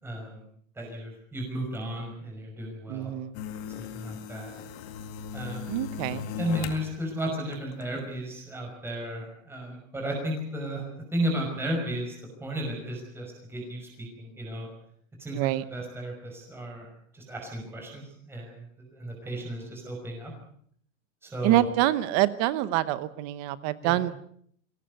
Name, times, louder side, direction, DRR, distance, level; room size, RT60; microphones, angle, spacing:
voice 1, 0.0-0.4 0.8-3.1 3.7-4.5 5.3-5.7 6.4-10.8 11.1-14.7 15.2-20.3 21.2-21.7 23.8-24.0, right 1 dB, 5° right, 0 dB, 5.6 m, -34 dB
voice 2, 2.9-3.4 5.7-6.2 15.3-15.6 21.4-24.1, right 15 dB, 30° right, 16 dB, 0.9 m, -26 dB
sound 1, 3.3-6.9 7.3-8.0, left 7 dB, 35° left, 2.1 m, -38 dB
23.0 x 18.0 x 8.1 m, 0.64 s
supercardioid pair, 175°, 40 cm